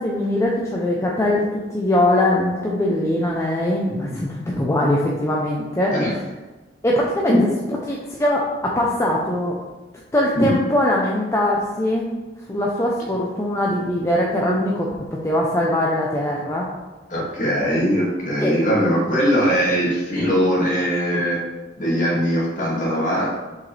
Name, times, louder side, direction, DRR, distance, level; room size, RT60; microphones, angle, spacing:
voice 1, 0.0-5.9 6.8-7.4 7.9-9.6 10.1-12.1 12.5-16.7 18.4-18.6, left 1 dB, 15° left, -3 dB, 0.6 m, -21 dB
voice 2, 3.9-4.2 4.5-4.6 5.9-6.1 7.3-7.4 10.3-10.5 17.1-21.4 21.8-23.3, equal, 45° left, -5 dB, 2.2 m, -21 dB
6.8 x 5.0 x 3.3 m, 1.2 s
head